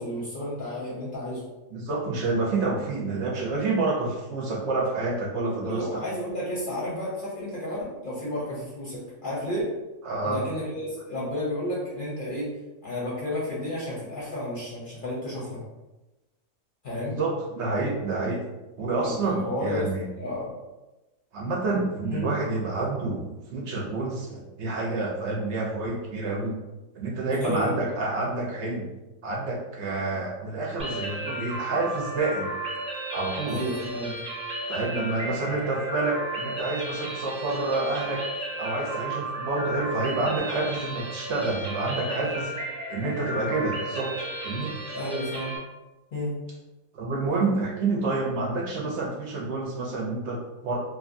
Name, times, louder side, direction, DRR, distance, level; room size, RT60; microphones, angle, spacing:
voice 1, 0.0-1.4 5.4-9.8 10.2-12.6 12.8-15.6 16.8-17.2 19.0-20.6 22.1-22.3 27.3-27.8 33.5-34.2 44.9-45.5 46.1-46.4, left 1 dB, 50° left, -6 dB, 0.7 m, -32 dB
voice 2, 1.7-6.0 10.0-10.4 17.2-18.4 18.8-20.1 21.3-26.6 26.9-28.9 29.2-32.5 33.1-33.6 34.7-42.5 42.9-44.7 46.9-50.8, right 3 dB, 65° right, -3 dB, 0.8 m, -28 dB
sound 1, 30.8-45.6, right 1 dB, 10° right, 0.3 m, -34 dB
2.8 x 2.2 x 2.5 m, 1.1 s
omnidirectional pair, 1.4 m